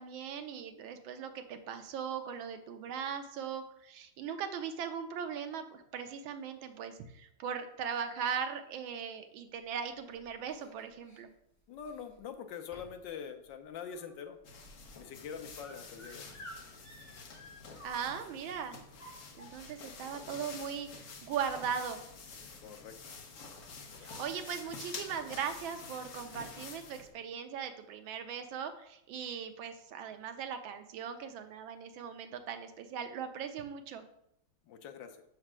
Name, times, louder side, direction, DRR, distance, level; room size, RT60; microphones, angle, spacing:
voice 1, 0.0-11.3 17.8-18.8 19.4-20.9 21.2-22.0 24.0-34.0, right 7 dB, 80° right, 8 dB, 1.4 m, -39 dB
sound 1, 9.7-11.2 11.8-12.3 12.7-13.1 13.4-18.3 18.8-19.9 20.7-20.8 21.1-21.3 21.7-22.1 22.4-22.6 23.6-23.7 24.0-24.2, equal, 10° left, 3.0 m, -54 dB
voice 2, 11.7-14.4 14.9-16.2 22.6-23.0 23.9-24.1 34.7-35.2, left 7 dB, 70° left, 7 dB, 1.3 m, -44 dB
sound 2, 14.4-27.1, left 4 dB, 50° left, 1.0 m, -49 dB
5.8 x 4.4 x 6.0 m, 0.77 s
omnidirectional pair, 2.2 m